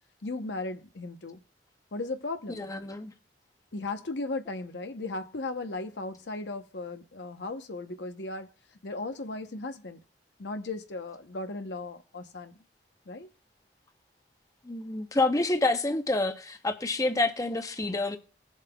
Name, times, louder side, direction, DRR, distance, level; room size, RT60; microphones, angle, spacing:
voice 1, 0.2-1.4 1.9-2.7 3.7-8.5 8.8-10.0 10.4-12.6 13.1-13.3, left 2 dB, 80° left, 0.9 m, -36 dB
voice 2, 2.6-3.1 14.6-18.2, left 2 dB, 20° left, 0.7 m, -28 dB
20.0 x 7.3 x 2.3 m
head